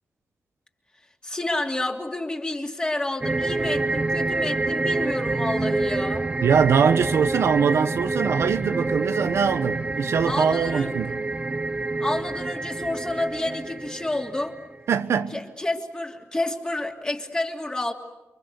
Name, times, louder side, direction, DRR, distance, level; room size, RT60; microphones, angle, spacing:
voice 1, 1.2-6.3 10.2-10.9 12.0-14.6 15.3-17.9, left 2 dB, 20° left, 3.0 m, -29 dB
sound 1, 3.2-14.7, right 3 dB, 25° right, 0.9 m, -27 dB
voice 2, 6.4-11.2 14.9-15.4, right 6 dB, 85° right, 1.1 m, -22 dB
30.0 x 24.0 x 8.0 m
wide cardioid pair, 100°, 5 cm